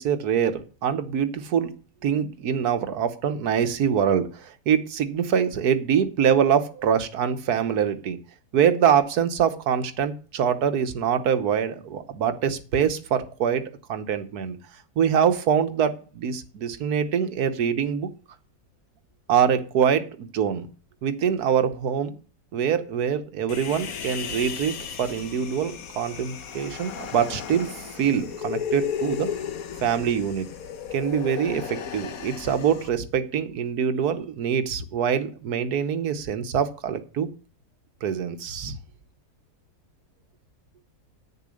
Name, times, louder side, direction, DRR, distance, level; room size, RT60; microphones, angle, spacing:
voice 1, 0.0-1.7 2.0-8.2 8.5-13.6 13.9-14.6 15.0-18.1 19.3-20.7 21.0-22.1 22.5-29.3 29.8-30.5 30.9-37.3 38.0-38.8, right 8 dB, 75° right, 11 dB, 1.5 m, -24 dB
Human voice, 23.5-32.9, left 7 dB, 65° left, 1.4 m, -34 dB
9.2 x 6.9 x 6.4 m, 0.38 s
omnidirectional pair, 1.7 m